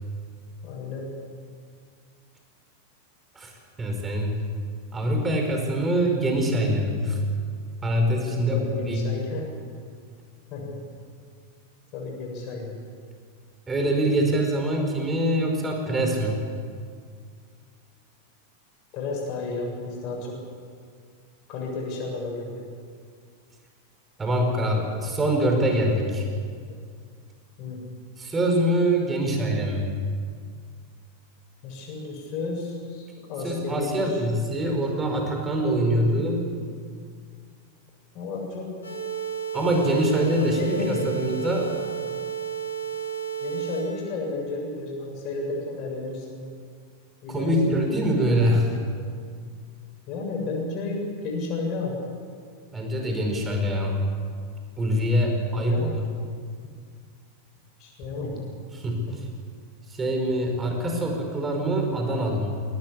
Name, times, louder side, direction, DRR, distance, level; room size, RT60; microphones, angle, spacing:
voice 1, 0.6-1.1 8.3-9.5 10.5-10.8 11.9-12.8 18.9-20.4 21.5-22.7 26.7-26.8 27.6-27.8 31.6-34.2 34.5-34.8 35.8-36.4 38.1-38.7 39.7-39.9 40.1-41.1 41.6-41.7 43.4-46.4 47.2-47.9 48.9-49.0 50.1-52.0 55.5-56.0 57.8-58.5 59.1-59.2 60.9-61.1, left 3 dB, 40° left, 0 dB, 7.4 m, -32 dB
voice 2, 3.8-4.4 4.9-7.2 7.8-9.1 13.7-16.4 24.2-26.3 28.2-29.9 33.4-36.4 39.5-41.7 47.3-48.8 52.7-54.0 54.8-56.1 58.7-59.0 59.9-62.6, right 1 dB, 15° right, 2 dB, 5.0 m, -24 dB
sound 1, 38.8-43.8, right 8 dB, 75° left, 6.1 m, -32 dB
21.0 x 18.5 x 8.6 m, 2.1 s
figure-of-eight pair, 90°, 0 cm